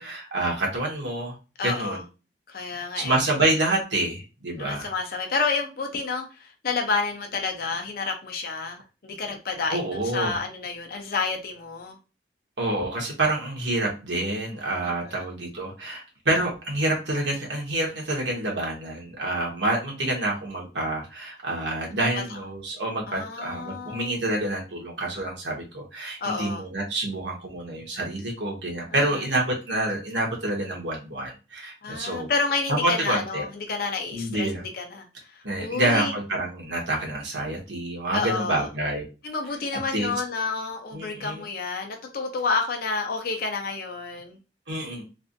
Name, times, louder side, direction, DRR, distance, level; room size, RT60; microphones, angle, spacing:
voice 1, 0.0-1.3 1.6-2.0 2.7-4.9 9.7-10.4 12.6-32.3 32.7-33.4 34.1-34.6 35.4-39.0 39.9-40.1 40.9-41.4 44.7-45.0, right 1 dB, 80° right, 1.2 m, -27 dB
voice 2, 1.6-2.0 2.5-3.2 4.5-12.0 14.8-15.2 23.1-24.1 26.2-26.6 28.9-29.2 31.8-36.1 38.1-38.7 39.2-44.4, left 4 dB, 55° left, 0.6 m, -30 dB
3.3 x 2.5 x 2.6 m
head